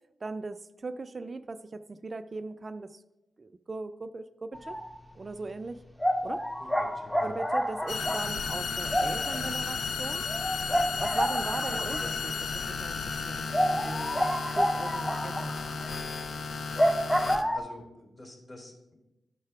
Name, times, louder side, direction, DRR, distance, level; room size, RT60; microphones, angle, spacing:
voice 1, 0.2-3.0 3.4-4.8 5.1-5.8 6.2-6.4 7.2-10.3 11.0-14.3 14.6-15.8, right 3 dB, 45° right, 10 dB, 0.3 m, -39 dB
sound 1, 4.5-5.0 5.3-5.4 6.0-12.4 12.7-12.8 13.1-13.2 13.5-17.6, equal, 5° left, 0.5 m, -29 dB
voice 2, 6.6-7.3 11.4-12.2 17.5-18.9, left 2 dB, 45° left, 1 dB, 2.5 m, -47 dB
sound 2, 7.9-17.4, left 5 dB, 75° left, 0.4 m, -34 dB
10.5 x 6.5 x 2.3 m, 0.96 s
cardioid pair, 50°, 0 cm